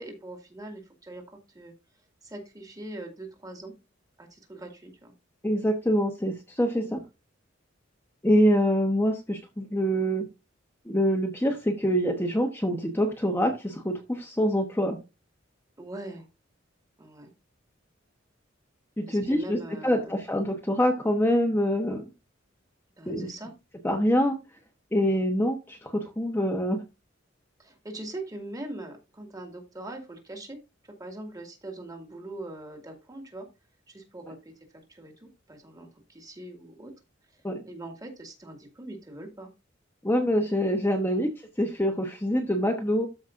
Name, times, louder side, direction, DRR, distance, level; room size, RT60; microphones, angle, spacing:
voice 1, 0.0-1.7 2.2-3.7 4.2-5.1 6.8-7.0 15.8-16.3 17.0-17.3 19.1-20.2 23.0-23.5 27.6-30.6 31.0-33.5 33.9-36.9 37.7-39.5 41.1-41.3, right 1 dB, 20° right, 3 dB, 2.2 m, -42 dB
voice 2, 5.4-7.0 8.2-10.3 10.9-15.0 19.0-19.6 19.8-22.0 23.1-23.3 23.8-24.4 24.9-26.8 37.4-37.6 40.0-41.3 41.6-43.1, equal, 10° left, 3 dB, 1.0 m, -25 dB
13.0 x 5.1 x 2.6 m, 0.26 s
head